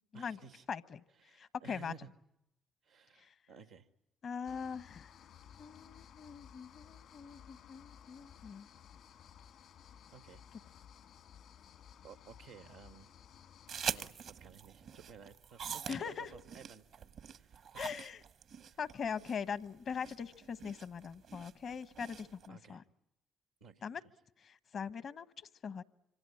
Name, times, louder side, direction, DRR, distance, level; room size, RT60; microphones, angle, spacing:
voice 1, 0.1-0.6 1.2-2.1 2.8-3.9 10.1-10.4 12.0-13.1 13.9-18.0 18.6-18.8 22.5-22.8 23.6-24.1, right 6 dB, 85° right, 9 dB, 1.3 m, -56 dB
voice 2, 0.7-1.0 1.3-1.9 3.1-3.3 4.2-5.1 5.6-8.7 15.9-16.3 17.8-18.2 18.8-22.8 23.8-24.0 24.4-25.8, left 6 dB, 55° left, 14 dB, 1.1 m, -41 dB
sound 1, 4.5-14.1, left 9 dB, 75° left, 2.1 m, -57 dB
sound 2, 13.7-22.5, right 7 dB, 65° right, 1.1 m, -44 dB
26.5 x 25.5 x 8.6 m, 0.83 s
hypercardioid pair, 40°, 0 cm